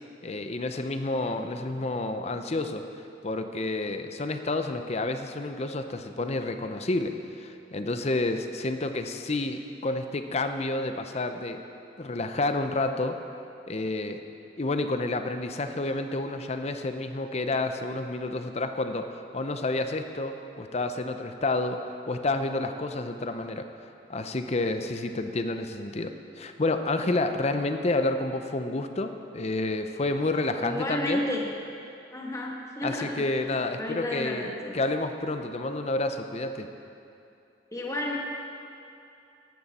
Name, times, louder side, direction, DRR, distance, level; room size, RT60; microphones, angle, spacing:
voice 1, 0.2-2.8 3.2-11.6 12.0-13.2 13.7-14.2 14.6-21.8 22.1-23.6 24.1-31.2 32.8-36.7, left 2 dB, 35° left, 7 dB, 0.7 m, -29 dB
voice 2, 30.6-31.5 32.1-34.8 37.7-38.2, left 1 dB, 15° left, -2 dB, 1.5 m, -32 dB
14.0 x 12.0 x 4.2 m, 2.7 s
head